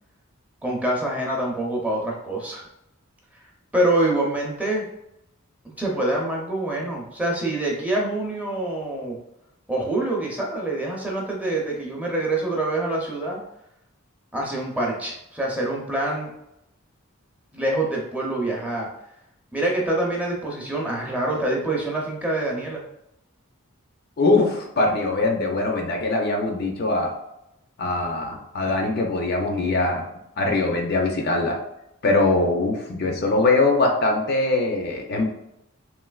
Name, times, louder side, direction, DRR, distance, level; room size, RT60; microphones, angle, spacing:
voice 1, 0.6-2.6 3.7-4.9 5.6-9.2 9.7-13.4 14.3-16.3 17.5-18.9 19.5-22.8, right 1 dB, 5° right, -2 dB, 0.5 m, -25 dB
voice 2, 24.2-27.1 27.8-30.1 30.4-31.6 32.0-35.2, left 2 dB, 50° left, 2 dB, 0.4 m, -22 dB
3.1 x 2.8 x 2.3 m, 0.83 s
head